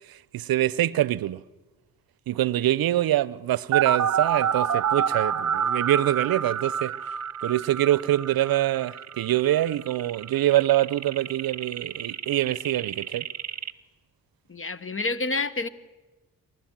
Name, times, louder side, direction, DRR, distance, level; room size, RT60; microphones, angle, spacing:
voice 1, 0.1-1.4 2.3-6.9 7.4-13.3, right 14 dB, 70° right, 0.6 m, -24 dB
sound 1, 3.7-13.7, right 8 dB, 45° right, 1.0 m, -28 dB
voice 2, 14.5-15.7, left 3 dB, 35° left, 1.3 m, -28 dB
28.5 x 12.5 x 7.4 m
supercardioid pair, 50°, 37 cm